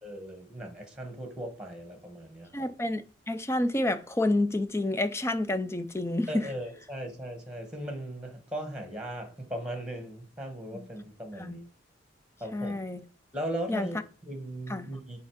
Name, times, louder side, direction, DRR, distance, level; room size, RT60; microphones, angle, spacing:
voice 1, 0.0-2.7 6.3-11.7 12.4-12.8 13.3-15.2, right 1 dB, 5° right, 1.8 m, -38 dB
voice 2, 2.5-6.5 10.7-10.9 11.4-11.6 12.5-13.0 13.7-13.9 14.7-14.9, left 1 dB, 15° left, 0.5 m, -29 dB
9.8 x 3.5 x 5.1 m
head